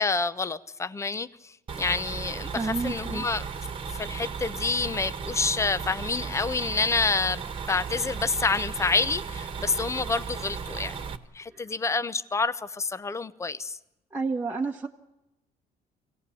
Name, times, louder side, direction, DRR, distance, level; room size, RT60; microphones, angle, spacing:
voice 1, 0.0-3.5 3.9-7.4 7.7-11.1 11.3-13.8, left 4 dB, 15° left, 0.8 m, -28 dB
sound 1, 1.7-11.2, right 6 dB, 30° right, 1.5 m, -35 dB
voice 2, 2.5-3.3 11.5-11.7 14.1-14.9, right 3 dB, 10° right, 1.3 m, -30 dB
24.5 x 17.5 x 8.5 m
cardioid pair, 110°, 17 cm